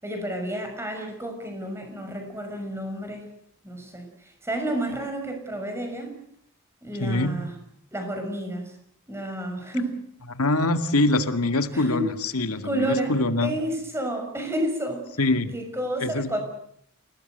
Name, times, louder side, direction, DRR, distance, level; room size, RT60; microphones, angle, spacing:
voice 1, 0.0-3.3 3.6-6.1 6.8-7.5 7.9-8.7 9.1-10.0 11.7-12.1 12.6-13.1 13.4-15.1 15.5-16.4, right 1 dB, 10° right, 5 dB, 6.4 m, -30 dB
voice 2, 7.0-7.4 10.3-13.6 15.2-15.5 16.0-16.3, left 2 dB, 85° left, 9 dB, 2.1 m, -24 dB
28.5 x 19.0 x 8.1 m, 0.69 s
head